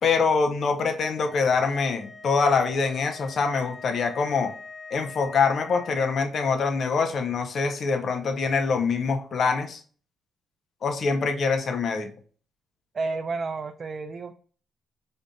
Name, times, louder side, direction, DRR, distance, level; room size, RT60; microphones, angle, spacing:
voice 1, 0.0-4.5 4.9-9.8 10.8-12.1, left 5 dB, 55° left, 6 dB, 0.6 m, -24 dB
sound 1, 1.0-6.2, left 4 dB, 25° left, 0.9 m, -44 dB
voice 2, 12.9-14.3, right 3 dB, 40° right, 6 dB, 0.3 m, -31 dB
5.2 x 2.5 x 2.2 m, 0.42 s
cardioid pair, 90°, 0 cm